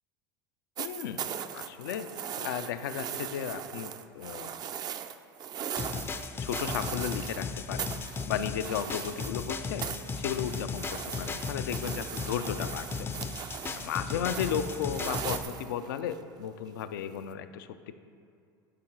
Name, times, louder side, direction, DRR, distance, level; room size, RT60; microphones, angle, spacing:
voice 1, 0.8-4.5 6.4-9.8 10.2-17.7, left 9 dB, 80° left, 10 dB, 0.4 m, -35 dB
sound 1, 0.8-7.4 7.8-9.5 9.8-16.1 17.3-17.4, right 8 dB, 40° right, 0.4 m, -39 dB
sound 2, 5.8-15.4, left 5 dB, 20° left, 0.4 m, -36 dB
11.0 x 3.9 x 4.6 m, 2.5 s
hypercardioid pair, 100°, 11 cm